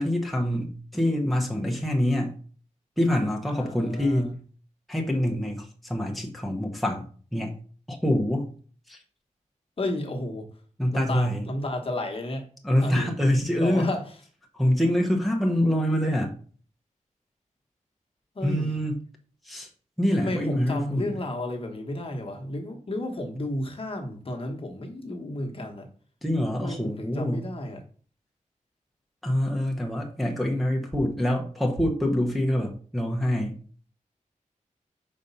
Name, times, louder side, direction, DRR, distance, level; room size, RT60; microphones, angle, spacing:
voice 1, 0.0-2.3 3.0-4.4 4.9-7.0 7.3-7.5 7.9-8.5 8.9-9.0 10.8-11.4 12.6-13.9 14.5-16.3 18.4-19.0 19.4-19.7 20.0-21.1 26.2-27.5 29.2-33.5, left 1 dB, ahead, -1 dB, 0.9 m, -25 dB
voice 2, 3.5-4.3 9.8-10.5 10.9-12.4 12.8-13.2 13.5-14.0 18.3-18.7 20.2-25.9 26.6-27.8, left 1 dB, 45° left, 2 dB, 1.2 m, -32 dB
5.3 x 4.1 x 5.5 m, 0.43 s
wide cardioid pair, 135°, 14 cm